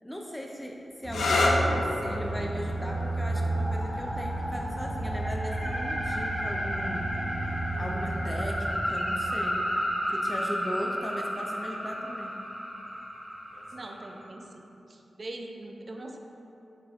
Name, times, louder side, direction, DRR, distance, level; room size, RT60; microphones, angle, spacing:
voice 1, 0.0-7.1 7.5-9.7 10.1-12.5, equal, 10° left, 0 dB, 0.5 m, -38 dB
sound 1, 1.0-8.5 9.5-10.0 13.5-13.9, left 2 dB, 85° left, 0.4 m, -33 dB
sound 2, 1.0-8.7, right 2 dB, 65° left, 1.3 m, -32 dB
sound 3, 2.8-14.3, equal, 10° right, 0.8 m, -33 dB
voice 2, 13.7-14.6 14.9-16.2, right 2 dB, 55° right, 2 dB, 0.4 m, -42 dB
5.5 x 2.5 x 3.4 m, 2.9 s
cardioid pair, 40°, 0 cm